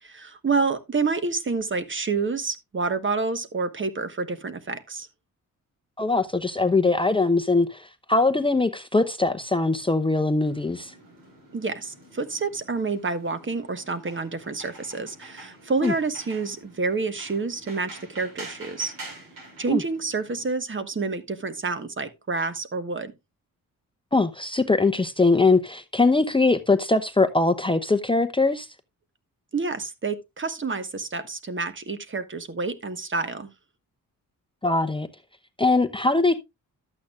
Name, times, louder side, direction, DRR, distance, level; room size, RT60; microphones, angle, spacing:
voice 1, 0.0-5.1 11.5-18.9 19.6-23.1 29.5-33.5, right 4 dB, 35° right, 1.3 m, -28 dB
voice 2, 6.0-10.9 15.8-15.9 19.7-19.8 24.1-28.7 34.6-35.1 35.6-36.4, left 3 dB, 15° left, 0.7 m, -21 dB
sound 1, 10.4-20.5, right 2 dB, 75° right, 4.9 m, -46 dB
12.0 x 8.5 x 2.4 m
cardioid pair, 85°, 35 cm